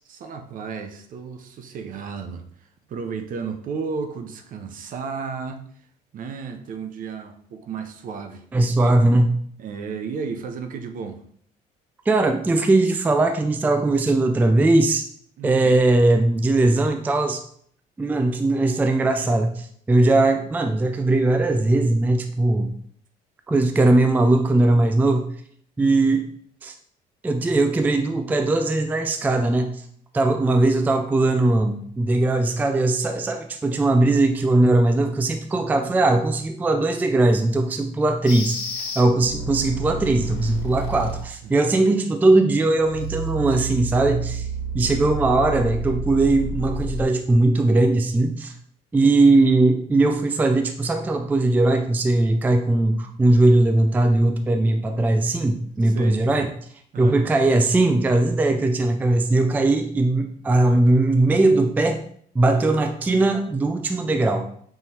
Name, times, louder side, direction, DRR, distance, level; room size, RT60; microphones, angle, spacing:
voice 1, 0.1-2.4 2.9-5.6 6.1-8.4 8.8-9.0 9.6-11.2 15.4-15.8 25.8-26.1 41.4-41.5 44.8-45.2 55.8-56.2 56.9-57.4 62.5-62.7, right 5 dB, 55° right, 7 dB, 0.6 m, -33 dB
voice 2, 8.5-9.3 12.1-15.1 15.4-17.4 18.0-22.7 23.5-25.3 25.8-26.2 26.6-26.7 27.2-29.7 30.1-38.6 39.0-44.5 44.7-48.5 48.9-56.5 57.0-62.0 62.4-64.5, right 2 dB, 10° right, 6 dB, 0.3 m, -19 dB
sound 1, 38.3-41.3 42.8-47.0, right 2 dB, 90° left, 1.1 m, -30 dB
5.6 x 3.0 x 2.8 m, 0.63 s
cardioid pair, 110°, 17 cm